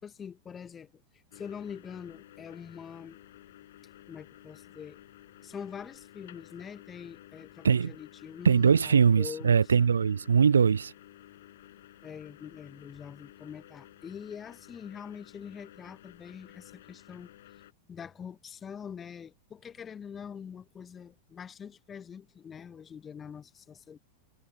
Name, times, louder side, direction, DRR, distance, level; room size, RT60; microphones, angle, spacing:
voice 1, 0.0-3.2 4.1-5.0 5.4-9.6 12.0-17.3 17.9-24.0, left 7 dB, 20° left, 1.3 m, -44 dB
sound 1, 1.3-17.7, left 13 dB, 55° left, 5.8 m, -54 dB
voice 2, 8.4-10.9, right 6 dB, 70° right, 0.3 m, -22 dB
figure-of-eight pair, 90°, 0 cm